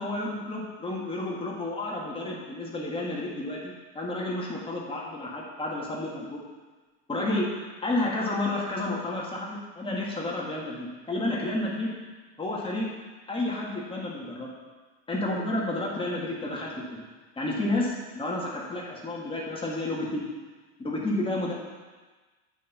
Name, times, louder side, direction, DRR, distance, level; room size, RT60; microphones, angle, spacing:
voice 1, 0.0-6.4 7.1-7.5 7.8-11.9 12.4-12.9 13.3-14.6 15.1-17.0 17.4-20.3 20.8-21.5, left 2 dB, 15° left, -4 dB, 1.5 m, -31 dB
8.2 x 4.4 x 5.4 m, 1.3 s
supercardioid pair, 125°, 34 cm